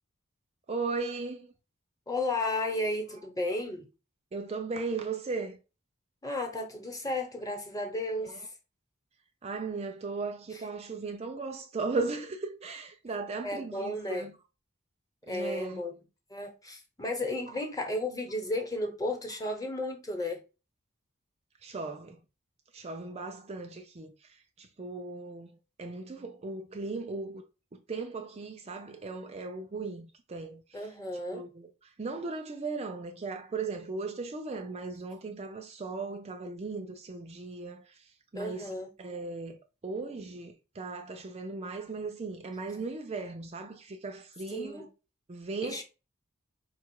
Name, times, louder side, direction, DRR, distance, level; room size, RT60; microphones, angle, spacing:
voice 1, 0.7-1.5 4.3-5.6 8.2-8.5 9.4-14.4 15.3-15.8 17.5-17.6 21.6-22.2 22.7-25.5 25.8-27.4 27.7-30.9 31.3-39.6 39.8-44.9 45.3-45.8, right 3 dB, 30° right, 0.4 m, -37 dB
voice 2, 2.1-3.9 6.2-8.5 13.4-14.3 15.3-15.9 16.3-20.4 30.7-31.4 38.3-38.9 44.5-44.9 45.6-45.8, left 1 dB, 15° left, 1.1 m, -33 dB
4.9 x 2.4 x 4.6 m
head